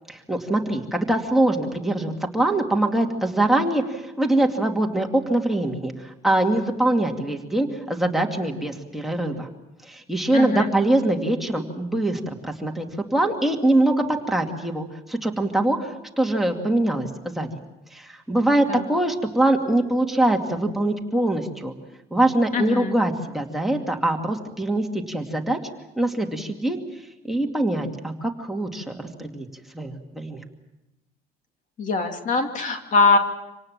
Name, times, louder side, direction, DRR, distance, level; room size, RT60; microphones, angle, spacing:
voice 1, 0.1-9.5 9.8-12.9 13.1-17.5 17.9-21.7 22.1-25.6 26.0-26.8 27.2-29.5 29.7-30.4, right 1 dB, ahead, 1 dB, 2.5 m, -23 dB
voice 2, 10.3-10.7 18.7-18.8 22.5-22.9 31.8-33.2, left 4 dB, 50° left, 5 dB, 2.6 m, -22 dB
26.5 x 18.5 x 7.4 m, 0.97 s
cardioid pair, 110°, 17 cm